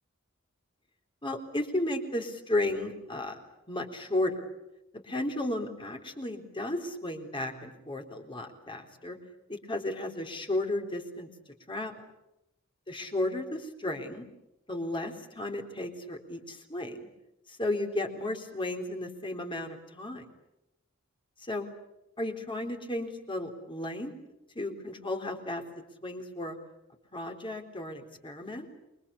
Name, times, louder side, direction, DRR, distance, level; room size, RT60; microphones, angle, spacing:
voice 1, 1.2-3.4 3.7-4.4 4.9-9.2 9.5-11.3 11.7-11.9 12.9-14.3 14.7-17.0 17.5-20.3 21.4-21.7 22.2-24.1 24.6-25.6 26.0-26.6 27.1-28.7, left 1 dB, 25° left, 4 dB, 3.8 m, -34 dB
28.5 x 23.5 x 8.5 m, 0.88 s
head